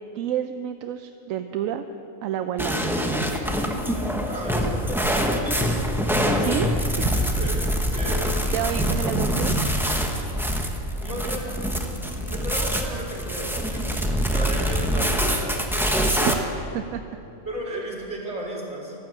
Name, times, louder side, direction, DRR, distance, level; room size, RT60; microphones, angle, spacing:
voice 1, 0.1-1.9 2.2-2.9 6.4-6.7 7.0-7.3 8.5-9.6 16.2-16.4 16.7-17.0, right 10 dB, 80° right, 8 dB, 1.0 m, -29 dB
sound 1, 2.6-16.3, equal, ahead, 1.0 m, -24 dB
voice 2, 4.3-5.1 5.5-5.9 7.3-7.6 7.8-8.9 11.0-11.7 12.0-16.2 17.4-18.9, right 1 dB, 55° right, -4 dB, 3.2 m, -34 dB
12.5 x 12.5 x 7.8 m, 2.9 s
omnidirectional pair, 1.4 m